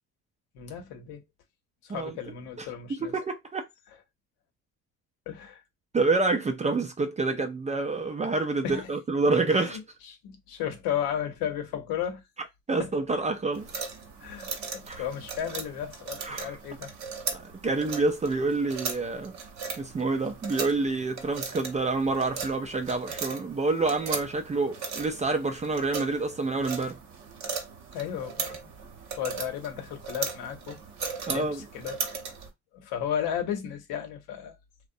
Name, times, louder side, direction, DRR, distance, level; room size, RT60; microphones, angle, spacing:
voice 1, 0.5-1.2 1.8-3.1 5.3-5.6 8.6-8.9 9.5-9.8 10.1-12.2 12.8-12.9 14.2-16.9 27.9-28.5 29.2-30.8 31.3-32.0 32.8-34.6, left 9 dB, 75° left, 0.8 m, -34 dB
voice 2, 2.6-3.7 5.9-9.8 12.7-13.7 14.9-15.1 16.2-16.6 17.3-19.4 19.8-27.0 31.3-31.6, right 3 dB, 20° right, 0.3 m, -28 dB
sound 1, 13.5-32.5, right 5 dB, 50° right, 0.8 m, -38 dB
2.6 x 2.1 x 2.5 m
supercardioid pair, 85°, 37 cm